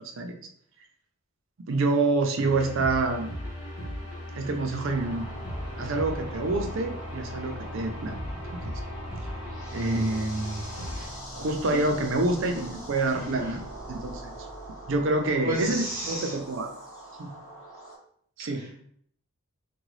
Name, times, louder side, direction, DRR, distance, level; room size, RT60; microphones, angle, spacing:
voice 1, 1.6-3.4 4.4-5.3 5.8-8.2 8.5-8.7 9.7-10.6 11.3-13.6 13.9-14.3 14.9-16.7 17.2-17.3 18.4-18.6, right 2 dB, 60° right, 4 dB, 0.5 m, -27 dB
sound 1, 2.4-11.1, left 1 dB, 90° left, 1.0 m, -38 dB
sound 2, 4.8-18.0, right 1 dB, 60° left, 1.0 m, -42 dB
voice 2, 13.1-13.6 15.4-16.4 18.5-18.8, equal, 20° right, -4 dB, 0.7 m, -34 dB
3.7 x 2.2 x 3.1 m, 0.64 s
head